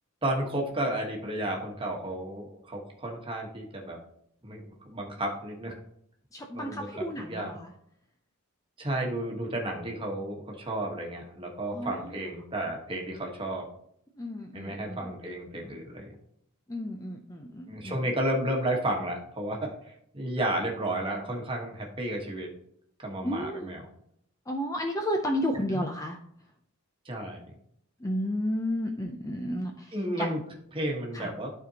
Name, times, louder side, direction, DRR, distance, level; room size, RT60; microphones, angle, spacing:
voice 1, 0.2-4.0 4.4-5.7 6.5-6.9 7.2-7.6 8.8-13.7 14.5-16.1 17.7-19.7 20.1-22.5 23.0-23.9 25.7-25.8 27.0-27.5 29.9-30.4 30.7-31.5, right 1 dB, 25° right, 0 dB, 1.3 m, -32 dB
voice 2, 6.3-7.7 11.7-12.0 14.2-15.1 16.7-18.0 23.2-23.7 24.5-26.2 28.0-30.3 31.1-31.3, equal, 15° left, 3 dB, 0.5 m, -32 dB
12.5 x 4.3 x 2.8 m, 0.70 s
head